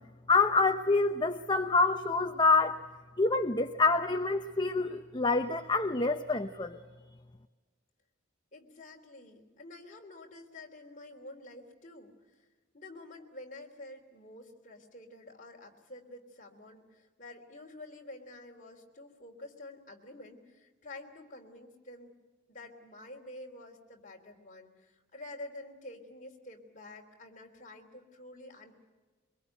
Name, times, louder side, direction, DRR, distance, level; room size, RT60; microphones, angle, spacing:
voice 1, 0.3-2.8 3.2-6.8, left 3 dB, 20° left, 7 dB, 0.7 m, -27 dB
voice 2, 8.5-12.1 12.7-22.1 22.5-28.7, left 2 dB, 40° left, 1 dB, 3.3 m, -49 dB
23.5 x 22.5 x 9.2 m, 1.3 s
head